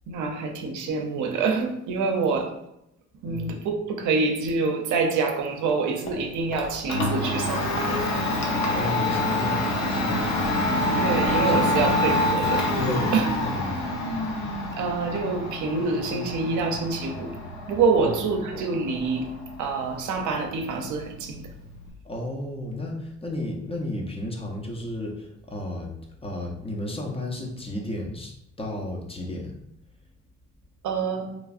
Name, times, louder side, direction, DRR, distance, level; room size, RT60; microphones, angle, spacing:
voice 1, 0.1-2.5 3.2-8.1 11.0-12.8 13.1-13.3 14.8-17.4 17.7-19.3 19.6-21.5 30.8-31.3, right 4 dB, 75° right, 3 dB, 0.6 m, -26 dB
Domestic sounds home sounds, 6.1-21.9, left 1 dB, 65° left, 0.7 m, -27 dB
voice 2, 8.5-10.7 11.4-11.8 12.8-13.8 18.0-18.2 22.0-25.9 26.2-28.3 28.6-29.6, left 1 dB, 20° left, 0 dB, 0.6 m, -33 dB
3.0 x 2.5 x 2.4 m, 0.80 s
cardioid pair, 90°, 30 cm